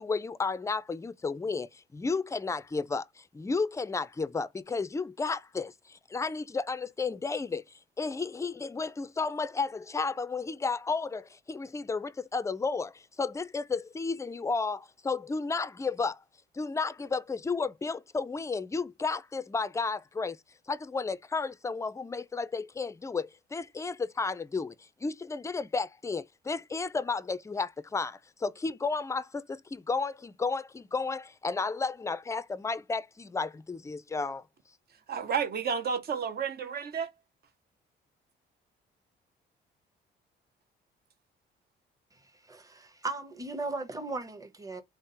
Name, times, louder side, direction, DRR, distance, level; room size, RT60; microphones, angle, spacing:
voice 1, 0.0-7.6 8.0-16.2 16.5-20.4 20.7-34.4, left 4 dB, 15° left, 0.4 m, -33 dB
voice 2, 35.1-37.1, right 6 dB, 55° right, 0.8 m, -31 dB
voice 3, 42.2-44.8, right 3 dB, 15° right, 1.0 m, -37 dB
3.6 x 2.0 x 3.9 m
cardioid pair, 80°, 19 cm